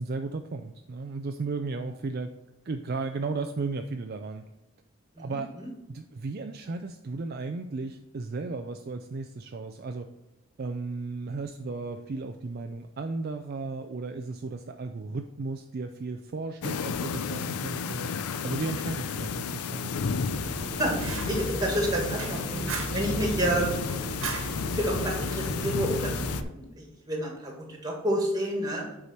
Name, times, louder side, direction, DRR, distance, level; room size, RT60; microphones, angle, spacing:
voice 1, 0.0-2.3 2.6-4.4 5.2-5.5 5.9-10.1 10.6-18.1 18.4-20.0, right 3 dB, 45° right, 6 dB, 0.4 m, -35 dB
voice 2, 5.1-5.7 20.8-20.9 21.3-23.8 24.6-28.8, right 1 dB, 15° right, 0 dB, 1.8 m, -30 dB
sound 1, 16.6-26.4, left 6 dB, 85° left, 0.5 m, -33 dB
Fire, 20.3-26.4, right 2 dB, 65° right, 1.3 m, -34 dB
8.2 x 4.8 x 4.3 m, 0.96 s
head